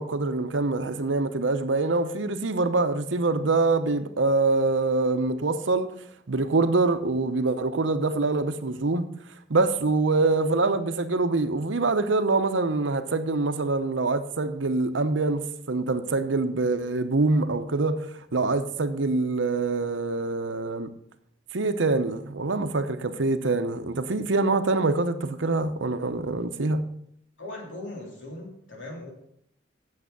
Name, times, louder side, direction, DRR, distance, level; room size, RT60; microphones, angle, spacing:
voice 1, 0.0-5.9 6.3-9.1 9.5-20.9 21.5-26.8, right 3 dB, 85° right, 0.9 m, -25 dB
voice 2, 27.4-29.1, left 1 dB, 85° left, 3.0 m, -39 dB
8.7 x 7.0 x 6.8 m
head